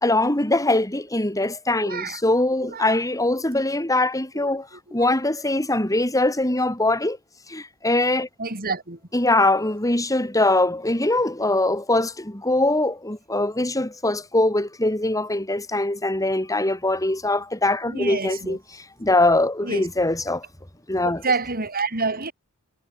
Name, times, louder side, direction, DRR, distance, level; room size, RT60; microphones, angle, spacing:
voice 1, 0.0-7.2 7.5-8.3 9.1-20.4 20.9-21.2, left 2 dB, 15° left, 4.0 m, -22 dB
voice 2, 1.8-2.2 2.7-3.0 4.3-4.5 5.0-5.1 8.4-9.0 17.9-18.6 19.6-19.9 21.0-22.3, right 4 dB, 45° right, 6.7 m, -28 dB
head